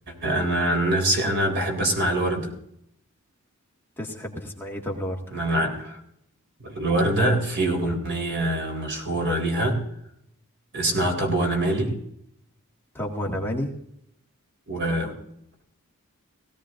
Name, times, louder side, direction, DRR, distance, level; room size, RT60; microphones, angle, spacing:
voice 1, 0.1-2.5 5.3-6.0 6.6-9.8 10.7-12.0 14.7-15.1, right 1 dB, 55° right, 4.0 m, -24 dB
voice 2, 4.0-5.2 12.9-13.7, equal, 10° left, 1.9 m, -30 dB
20.0 x 16.5 x 2.6 m
head